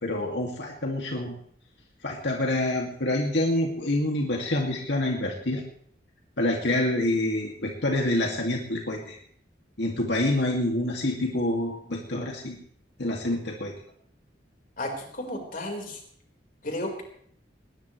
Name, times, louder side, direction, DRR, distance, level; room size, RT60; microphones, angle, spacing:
voice 1, 0.0-1.3 2.0-5.6 6.4-9.2 9.8-12.6 13.0-13.7, left 1 dB, 85° left, 0 dB, 2.4 m, -27 dB
voice 2, 14.8-16.0 16.6-17.0, left 1 dB, 55° left, 1 dB, 4.6 m, -33 dB
19.5 x 19.5 x 3.3 m, 0.63 s
head